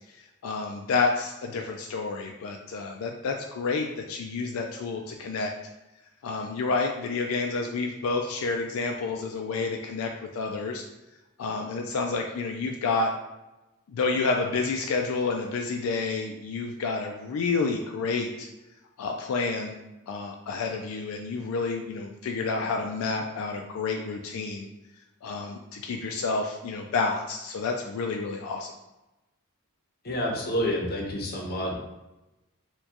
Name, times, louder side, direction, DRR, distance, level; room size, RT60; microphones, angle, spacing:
voice 1, 0.4-5.5 6.2-10.8 11.4-13.1 13.9-18.5 19.0-19.8 20.1-24.7 25.2-28.7, left 4 dB, 75° left, 2 dB, 0.3 m, -29 dB
voice 2, 30.0-31.7, equal, 45° left, 0 dB, 0.6 m, -28 dB
4.4 x 2.2 x 2.8 m, 0.98 s
head